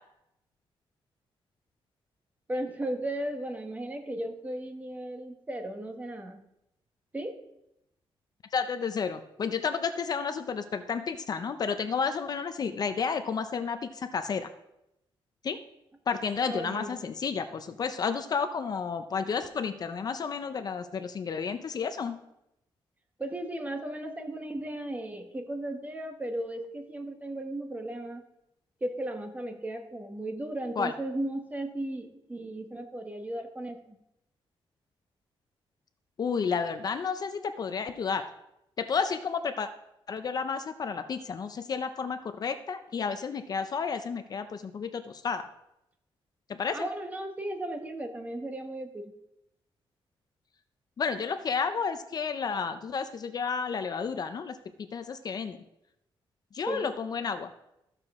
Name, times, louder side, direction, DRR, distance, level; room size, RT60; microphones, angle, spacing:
voice 1, 2.5-6.4 7.1-7.4 16.5-17.0 23.2-28.2 28.8-34.0 46.7-49.1 56.7-56.9, right 1 dB, 15° right, 5 dB, 1.1 m, -35 dB
voice 2, 8.5-14.5 15.4-15.6 16.1-22.2 30.8-30.9 36.2-38.3 38.8-39.7 40.1-45.5 46.5-46.9 51.0-55.6 56.5-57.5, left 5 dB, 45° left, 9 dB, 0.5 m, -31 dB
14.5 x 6.7 x 3.6 m, 0.85 s
wide cardioid pair, 150°, 10 cm